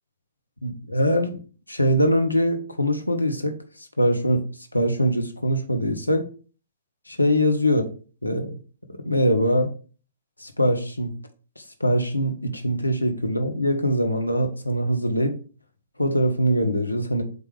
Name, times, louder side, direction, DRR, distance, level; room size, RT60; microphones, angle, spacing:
voice 1, 0.6-1.4 1.7-3.5 4.0-4.4 4.7-6.3 7.1-7.8 8.2-8.6 8.9-9.7 10.4-11.1 11.8-15.4 16.0-17.2, equal, 90° left, 1.1 m, -22 dB
8.1 x 3.4 x 3.4 m
figure-of-eight pair, 120°, 0 cm